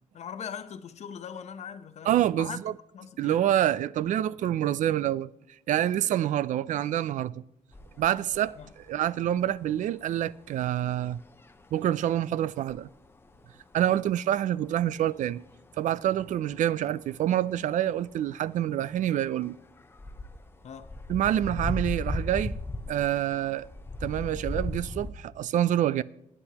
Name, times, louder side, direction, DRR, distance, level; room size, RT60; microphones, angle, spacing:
voice 1, 0.1-2.6 2.9-3.4 8.6-8.7 20.6-20.9, left 7 dB, 55° left, 0.8 m, -40 dB
voice 2, 2.1-2.7 3.2-5.3 5.7-7.4 8.0-11.2 11.7-12.9 13.7-15.4 15.8-19.5 21.1-22.6 22.9-23.7 24.0-26.0, right 11 dB, 70° right, 0.4 m, -27 dB
sound 1, 7.7-25.1, left 1 dB, 15° left, 0.7 m, -38 dB
22.5 x 9.8 x 2.9 m
cardioid pair, 130°, 13 cm